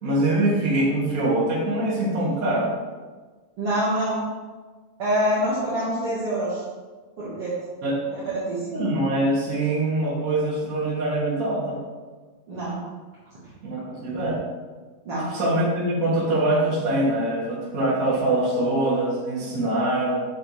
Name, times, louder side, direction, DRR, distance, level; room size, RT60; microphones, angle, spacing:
voice 1, 0.0-2.7 7.8-8.0 8.7-11.8 13.6-14.4 15.3-20.3, right 1 dB, 30° right, -7 dB, 1.8 m, -23 dB
voice 2, 3.6-4.2 5.0-6.6 7.2-7.5 8.2-8.8 12.5-12.8 15.1-15.4, equal, 50° right, -9 dB, 2.0 m, -25 dB
8.1 x 6.4 x 3.2 m, 1.4 s
omnidirectional pair, 4.2 m